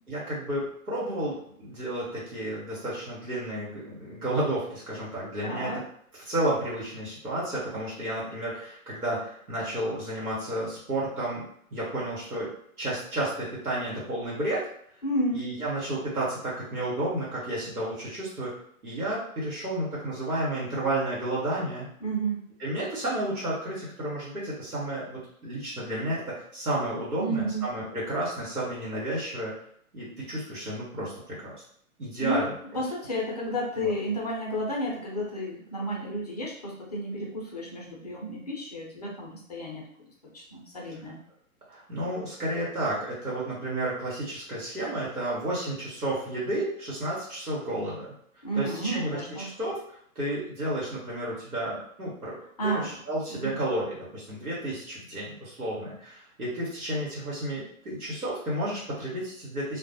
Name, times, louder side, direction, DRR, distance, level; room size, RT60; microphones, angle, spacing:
voice 1, 0.1-5.7 6.3-11.4 11.7-12.5 12.8-14.6 15.3-18.5 18.8-21.9 22.6-29.5 29.9-31.1 31.4-31.5 32.0-32.8 33.8-33.9 41.7-48.1 48.5-52.3 52.6-59.8, right 1 dB, 80° right, -7 dB, 1.1 m, -31 dB
voice 2, 5.4-5.8 15.0-15.4 22.0-22.4 27.2-27.7 32.2-32.4 32.7-39.8 40.3-41.2 48.4-49.5 52.6-52.9 53.3-53.6, right 1 dB, 30° left, -2 dB, 0.4 m, -31 dB
2.3 x 2.0 x 2.7 m, 0.65 s
figure-of-eight pair, 120°, 43 cm